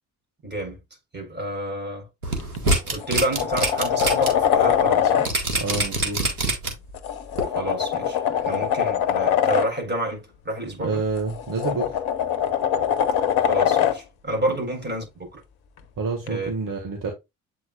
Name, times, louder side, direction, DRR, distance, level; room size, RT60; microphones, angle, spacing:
voice 1, 0.4-0.8 1.1-2.1 2.9-5.3 7.5-11.0 13.5-15.4 16.3-16.5, right 1 dB, 25° right, 4.4 m, -29 dB
sound 1, 2.2-4.3 4.7-4.8 5.3-6.9 7.4-7.5, right 2 dB, 85° right, 1.7 m, -24 dB
sound 2, 2.4-2.6 3.0-5.3 6.9-9.7 11.2-14.0 16.3-16.4, left 9 dB, 60° left, 1.0 m, -22 dB
voice 2, 5.6-6.2 10.8-12.0 16.0-17.1, right 4 dB, 50° right, 1.9 m, -28 dB
8.0 x 4.9 x 2.4 m
figure-of-eight pair, 45°, 42 cm